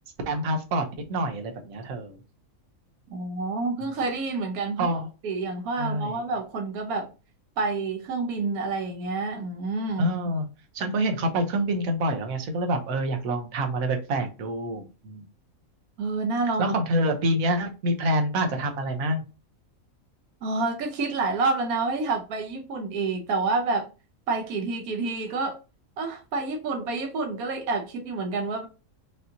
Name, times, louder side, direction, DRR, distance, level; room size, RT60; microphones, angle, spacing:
voice 1, 0.3-2.2 4.8-5.1 5.8-6.2 10.0-10.5 10.7-15.2 16.6-19.2, right 1 dB, 70° right, 1.3 m, -27 dB
voice 2, 3.1-4.9 5.2-7.1 7.6-10.1 16.0-16.7 20.4-23.9 24.3-25.6 26.0-28.7, right 3 dB, 90° right, 1.2 m, -28 dB
5.3 x 2.8 x 2.7 m
omnidirectional pair, 1.5 m